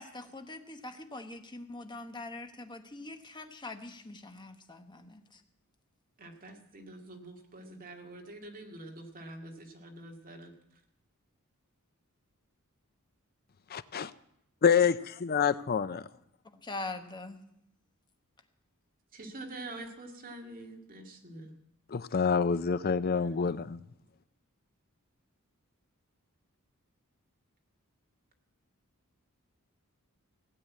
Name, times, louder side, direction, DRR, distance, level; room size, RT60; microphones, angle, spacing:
voice 1, 0.0-5.4 16.5-17.4, left 2 dB, 20° left, 6 dB, 1.2 m, -43 dB
voice 2, 6.2-10.5 19.1-21.5 23.2-23.6, right 2 dB, 40° right, 2 dB, 2.2 m, -46 dB
voice 3, 13.7-14.1 14.6-16.1 21.9-23.8, left 6 dB, 45° left, 15 dB, 0.5 m, -27 dB
17.0 x 8.0 x 8.5 m, 0.78 s
head